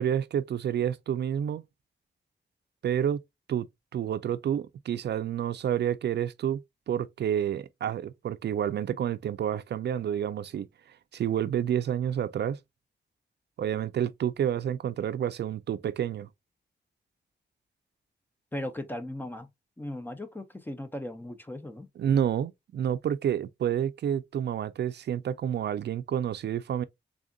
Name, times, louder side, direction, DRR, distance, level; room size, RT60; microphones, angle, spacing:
voice 1, 0.0-1.6 2.8-3.2 3.5-3.7 3.9-6.6 6.9-12.6 13.6-16.3 22.0-26.8, right 9 dB, 65° right, 0.4 m, -29 dB
voice 2, 18.5-19.5 19.8-21.9, left 1 dB, 10° left, 0.5 m, -37 dB
3.8 x 3.5 x 2.3 m
wide cardioid pair, 175°, 19 cm